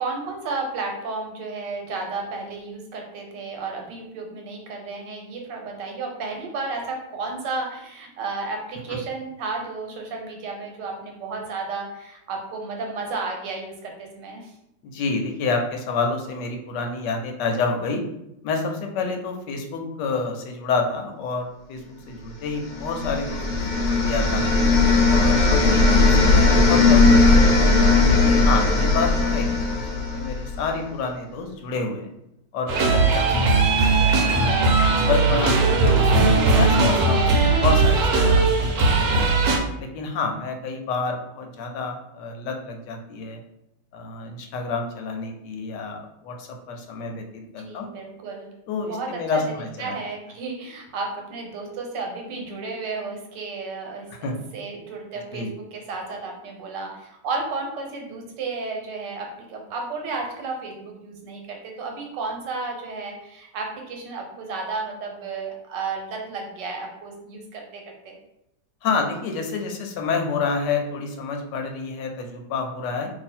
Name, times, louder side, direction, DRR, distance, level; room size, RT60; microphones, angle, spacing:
voice 1, 0.0-14.5 47.6-48.5 48.8-49.4 49.8-68.1, right 3 dB, 80° right, 1 dB, 1.4 m, -33 dB
voice 2, 14.8-18.0 18.4-24.5 25.1-27.6 28.0-32.1 32.5-36.0 36.5-39.4 39.8-43.4 43.9-47.3 47.5-47.9 48.7-50.0 54.2-54.4 55.3-55.5 68.8-73.1, left 4 dB, 80° left, 3 dB, 1.2 m, -29 dB
sound 1, 22.7-30.7, left 3 dB, 60° left, 0.8 m, -18 dB
sound 2, 32.7-39.6, right 3 dB, 65° right, 1.1 m, -18 dB
2.7 x 2.7 x 4.2 m, 0.84 s
omnidirectional pair, 1.9 m